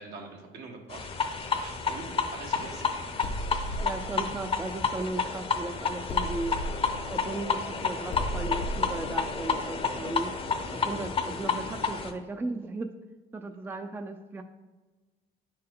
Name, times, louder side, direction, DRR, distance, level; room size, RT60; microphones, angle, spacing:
voice 1, 0.0-3.0, right 3 dB, 80° right, 1 dB, 1.4 m, -44 dB
sound 1, 0.9-12.1, left 5 dB, 35° left, 0.7 m, -31 dB
sound 2, 3.2-5.6 6.1-10.7, equal, 70° left, 0.7 m, -37 dB
voice 2, 3.8-6.6 7.1-10.3 10.7-12.9 13.3-14.4, right 2 dB, 15° right, 7 dB, 0.4 m, -36 dB
9.4 x 4.4 x 3.7 m, 1.3 s
cardioid pair, 110°, 17 cm